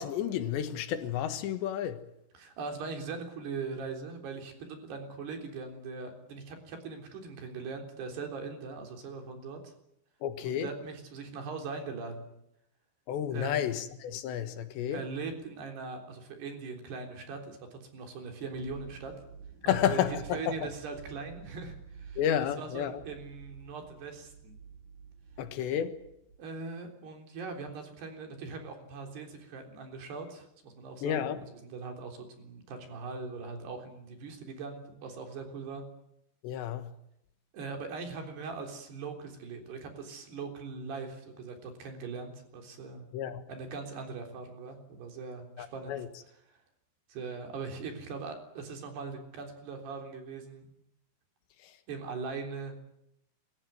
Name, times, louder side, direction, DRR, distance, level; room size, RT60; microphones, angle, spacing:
voice 1, 0.0-2.0 10.2-10.7 13.1-15.1 19.7-20.7 22.2-23.0 25.4-25.9 31.0-31.4 36.4-36.9 43.1-43.4 45.6-46.1 51.6-51.8, left 10 dB, 80° left, 3.6 m, -31 dB
voice 2, 2.4-9.7 10.4-12.3 13.3-13.7 14.9-19.1 19.6-22.2 22.6-24.6 26.4-31.3 31.6-35.8 37.5-43.1 43.5-46.0 47.1-50.7 51.9-52.8, right 4 dB, 65° right, 5.7 m, -41 dB
sound 1, 18.5-26.4, right 6 dB, 50° right, 4.8 m, -50 dB
28.5 x 15.0 x 9.3 m
omnidirectional pair, 5.1 m